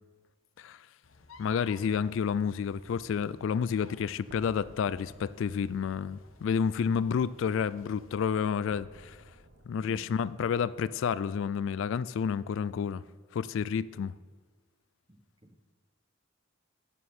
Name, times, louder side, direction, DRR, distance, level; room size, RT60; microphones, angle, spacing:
sound 1, 1.0-8.3, left 3 dB, 80° left, 0.9 m, -57 dB
voice 1, 1.4-9.2 9.7-13.0 13.3-14.1, left 7 dB, 65° left, 0.3 m, -30 dB
sound 2, 4.3-8.3 8.7-12.0, right 1 dB, 60° right, 1.0 m, -57 dB
voice 2, 9.8-10.2 15.1-15.6, equal, 25° right, 0.9 m, -52 dB
13.0 x 9.0 x 4.3 m
head